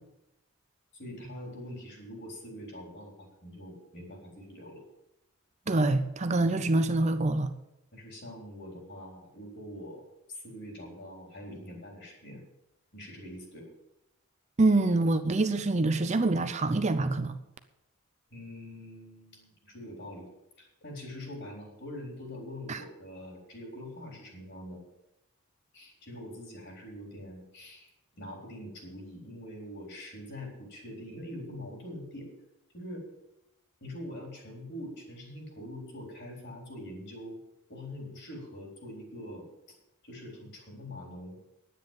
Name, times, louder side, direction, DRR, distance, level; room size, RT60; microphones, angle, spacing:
voice 1, 0.9-4.8 7.9-10.0 10.3-12.4 12.9-13.7 18.3-20.3 20.6-24.8 25.7-32.3 32.7-33.1 33.8-37.4 37.7-39.8 40.0-41.4, left 1 dB, 50° left, 4.0 m, -44 dB
voice 2, 5.7-7.5 14.6-17.4 22.7-22.8, right 2 dB, 30° right, 0.6 m, -25 dB
10.5 x 9.3 x 7.5 m
head